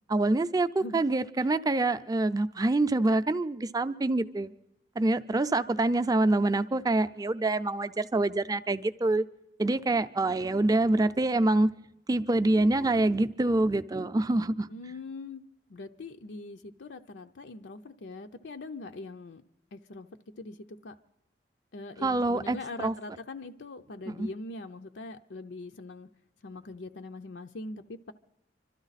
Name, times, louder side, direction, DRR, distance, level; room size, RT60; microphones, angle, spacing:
voice 1, 0.1-4.5 5.0-9.3 9.6-11.7 12.1-14.7 22.0-22.9 24.1-24.3, right 2 dB, 20° right, 0.5 m, -26 dB
voice 2, 14.7-15.4 15.7-19.4 19.7-20.1 20.4-21.0 21.7-26.1 26.4-28.1, left 2 dB, 85° left, 0.6 m, -42 dB
26.0 x 13.0 x 4.1 m
head